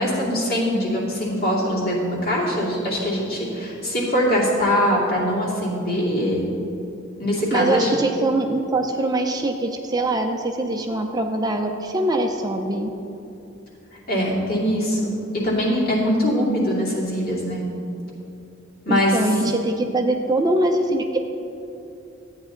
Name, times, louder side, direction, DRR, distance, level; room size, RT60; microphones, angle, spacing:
voice 1, 0.0-6.4 7.2-7.9 14.1-17.6 18.9-19.2, equal, 50° left, -5 dB, 2.5 m, -22 dB
voice 2, 7.5-12.9 18.9-21.2, right 2 dB, 20° right, 4 dB, 0.5 m, -23 dB
12.5 x 8.8 x 3.8 m, 2.8 s
head